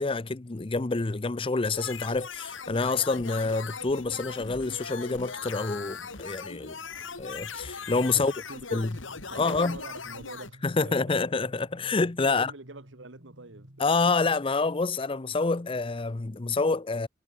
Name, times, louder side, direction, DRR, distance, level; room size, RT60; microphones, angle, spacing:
voice 1, 0.0-6.8 7.2-8.3 8.7-8.9 9.4-9.8 10.6-12.5 13.8-17.1, left 3 dB, 30° left, 0.6 m, -27 dB
sound 1, 1.7-10.5, left 5 dB, 80° left, 2.6 m, -40 dB
sound 2, 3.8-10.2, equal, 10° right, 3.7 m, -59 dB
voice 2, 8.1-9.0 9.3-11.4 12.2-13.9, right 3 dB, 70° right, 1.5 m, -45 dB
sound 3, 8.9-14.5, equal, 50° right, 5.2 m, -54 dB
head